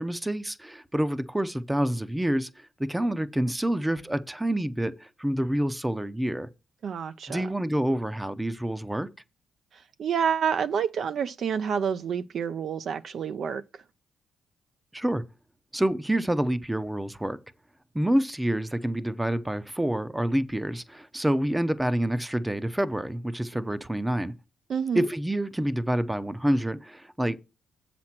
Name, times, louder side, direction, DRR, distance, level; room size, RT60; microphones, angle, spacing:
voice 1, 0.0-6.5 7.3-9.1 14.9-15.2 15.7-17.4 17.9-24.3 24.9-27.4, right 1 dB, 10° right, 0.6 m, -27 dB
voice 2, 6.8-7.4 10.0-13.6 24.7-25.0, right 7 dB, 55° right, 0.5 m, -28 dB
7.6 x 5.9 x 5.9 m
cardioid pair, 90°, 0 cm